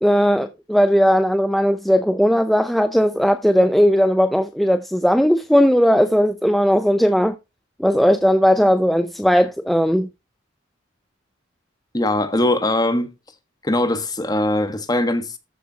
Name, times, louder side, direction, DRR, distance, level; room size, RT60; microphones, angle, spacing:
voice 1, 0.0-7.4 7.8-10.1, equal, ahead, 0.6 m, -17 dB
voice 2, 11.9-13.1 13.6-15.4, left 1 dB, 20° left, 1.4 m, -21 dB
14.0 x 6.6 x 2.8 m
head